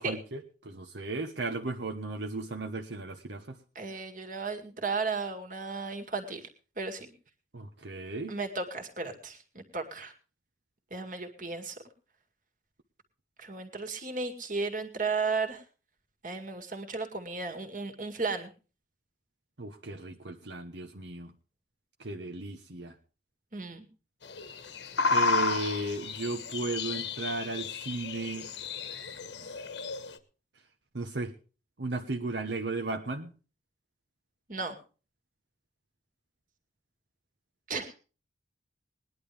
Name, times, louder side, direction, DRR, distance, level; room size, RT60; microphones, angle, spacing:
voice 1, 0.0-3.6 7.5-8.4 19.6-21.3 22.0-22.9 25.1-28.5 30.9-31.3 31.8-33.3, right 3 dB, 75° right, 4 dB, 1.2 m, -35 dB
voice 2, 3.8-6.5 6.8-7.1 8.3-10.1 10.9-11.8 13.4-15.6 16.2-18.5 23.5-23.9 34.5-34.8 37.7-38.0, right 4 dB, 45° right, 5 dB, 2.2 m, -34 dB
sound 1, 24.2-30.2, left 4 dB, 75° left, 1.4 m, -32 dB
20.0 x 11.0 x 3.4 m, 0.36 s
head